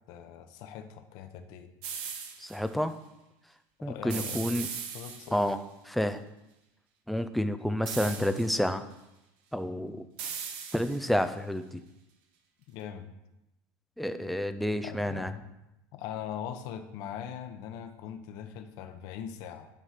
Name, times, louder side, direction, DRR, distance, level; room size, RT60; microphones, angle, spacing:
voice 1, 0.1-1.7 3.8-5.5 8.0-8.4 12.7-13.1 14.8-15.5 15.9-19.7, left 9 dB, 45° left, 8 dB, 0.9 m, -41 dB
sound 1, 1.8-2.6 4.1-5.5 7.9-8.6 10.2-11.2, right 7 dB, 55° right, 1.2 m, -39 dB
voice 2, 2.4-2.9 3.8-4.7 5.3-5.6 5.9-6.2 7.1-8.9 9.5-10.0 10.7-11.8 14.0-15.3, equal, ahead, 10 dB, 0.3 m, -29 dB
11.0 x 4.8 x 5.8 m, 0.94 s
cardioid pair, 180°, 9 cm